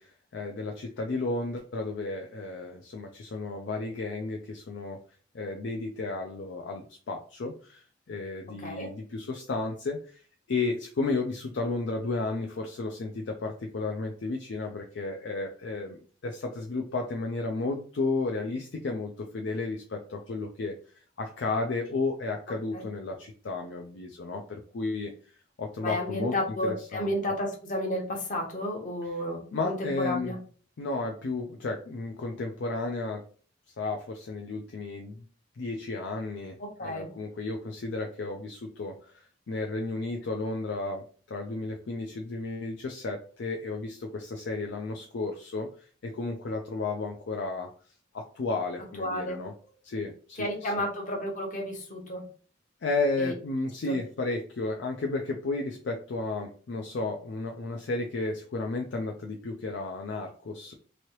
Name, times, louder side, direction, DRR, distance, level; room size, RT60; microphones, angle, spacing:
voice 1, 0.0-5.0 5.3-10.2 10.5-25.1 25.6-26.3 26.6-27.1 29.5-30.3 30.8-33.2 33.8-35.2 35.5-47.7 48.1-49.5 49.8-50.7 52.8-60.7, left 3 dB, 60° left, 2 dB, 0.4 m, -33 dB
voice 2, 25.8-30.4 36.8-37.1 49.0-49.4 50.4-52.3 53.2-53.3 53.9-54.0, left 1 dB, 40° left, 1 dB, 0.9 m, -32 dB
3.1 x 2.7 x 2.9 m, 0.42 s
head